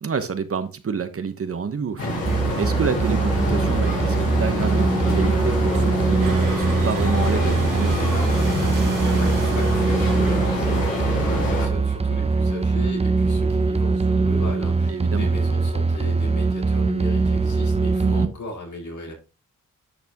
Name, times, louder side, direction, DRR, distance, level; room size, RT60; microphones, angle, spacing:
voice 1, 0.0-2.2 2.6-8.0 14.9-15.3 18.0-18.3, right 6 dB, 45° right, 1.0 m, -28 dB
sound 1, 2.0-11.7, left 2 dB, 85° left, 5.5 m, -26 dB
sound 2, 2.3-18.3, right 4 dB, 20° right, 0.5 m, -22 dB
sound 3, 6.2-11.7, right 6 dB, 80° right, 1.7 m, -37 dB
voice 2, 9.2-19.1, left 1 dB, 65° left, 5.3 m, -36 dB
10.5 x 6.0 x 2.9 m
cardioid pair, 55°, 31 cm